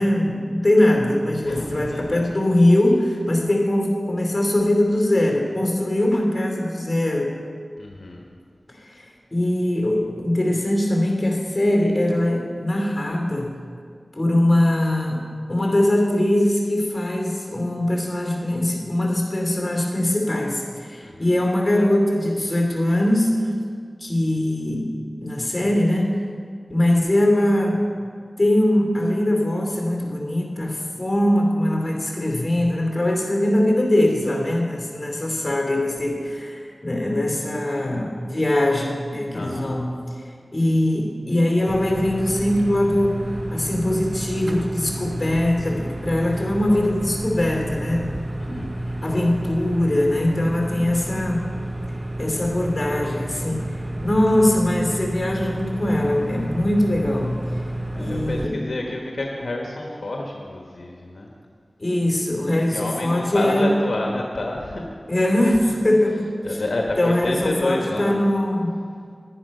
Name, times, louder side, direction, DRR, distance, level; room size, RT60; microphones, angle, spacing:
voice 1, 0.0-7.3 8.8-13.5 14.1-15.2 15.5-23.5 24.0-24.9 25.2-26.3 26.7-27.9 28.4-39.9 40.5-48.1 48.5-48.7 49.0-51.5 52.2-57.4 58.0-58.6 61.8-63.7 65.1-66.6 67.0-68.8, left 1 dB, 35° left, 1 dB, 2.7 m, -21 dB
voice 2, 1.4-2.2 7.8-8.2 21.0-21.3 39.3-39.8 48.4-48.8 57.9-61.3 62.5-64.8 66.4-68.1, left 2 dB, 75° left, 0 dB, 1.2 m, -29 dB
sound 1, 41.7-58.5, right 1 dB, 35° right, 0.7 m, -31 dB
10.5 x 10.0 x 5.4 m, 2.2 s
cardioid pair, 40°, 0 cm